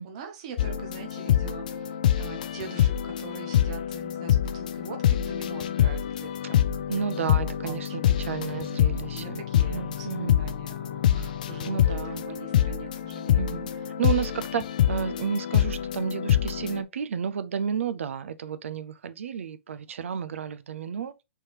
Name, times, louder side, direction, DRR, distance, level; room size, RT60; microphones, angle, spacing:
voice 1, 0.0-7.8 8.1-8.2 9.0-13.8, right 6 dB, 30° right, 0.7 m, -43 dB
sound 1, 0.6-16.8, left 10 dB, 35° left, 0.3 m, -26 dB
voice 2, 6.9-9.4 9.7-10.4 11.7-12.2 13.4-13.7 14.0-21.1, right 7 dB, 75° right, 0.5 m, -32 dB
4.6 x 3.4 x 3.0 m
hypercardioid pair, 180°, 7 cm